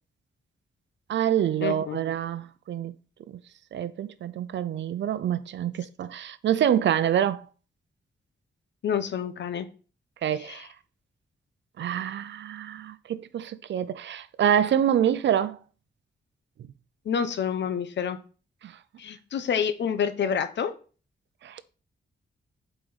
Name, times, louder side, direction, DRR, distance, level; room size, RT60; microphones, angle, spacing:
voice 1, 1.1-2.9 3.3-3.4 3.7-7.5 10.2-10.7 11.8-15.6 18.6-18.8 21.4-21.6, right 9 dB, 80° right, 0.6 m, -26 dB
voice 2, 1.6-2.0 8.8-9.7 10.5-10.6 17.0-18.2 19.0-20.7, left 7 dB, 75° left, 0.9 m, -28 dB
7.7 x 5.0 x 4.1 m
wide cardioid pair, 165°, 19 cm